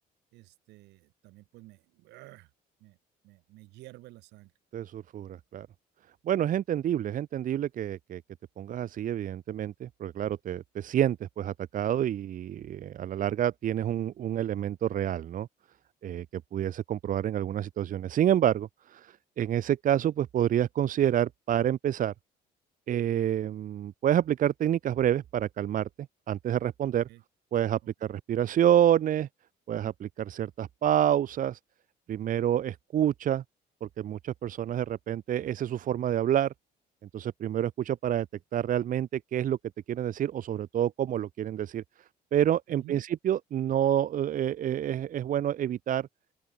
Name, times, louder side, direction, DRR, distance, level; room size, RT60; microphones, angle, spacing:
voice 1, 0.3-2.5 2.8-3.0 3.2-4.5 27.1-27.2 28.0-28.1 42.7-43.0, right 19 dB, 90° right, 6.5 m, -51 dB
voice 2, 4.7-5.7 6.2-8.2 8.6-15.5 16.0-22.1 22.9-25.9 26.3-27.1 27.5-29.3 29.7-31.6 32.1-33.4 33.8-36.5 37.1-38.3 38.5-39.6 39.9-41.8 42.3-46.1, right 10 dB, 50° right, 1.2 m, -28 dB
open air
cardioid pair, 110°, 17 cm